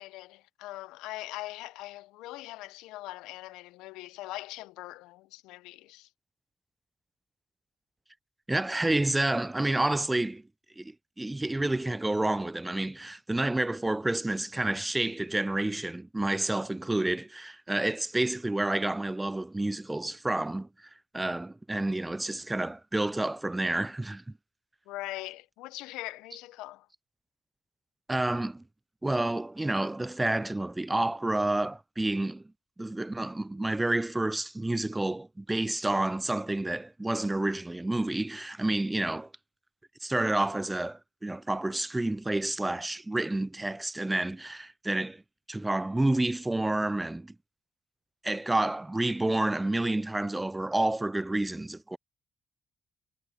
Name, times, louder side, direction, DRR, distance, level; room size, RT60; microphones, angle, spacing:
voice 1, 0.0-6.1 24.9-26.9, left 18 dB, 85° left, 0.6 m, -41 dB
voice 2, 8.5-10.4 10.8-20.7 21.1-24.2 28.1-28.6 29.0-32.4 32.8-39.3 40.0-45.2 45.5-47.3 48.2-52.0, right 2 dB, 15° right, 0.4 m, -29 dB
hypercardioid pair, 45°, 0 cm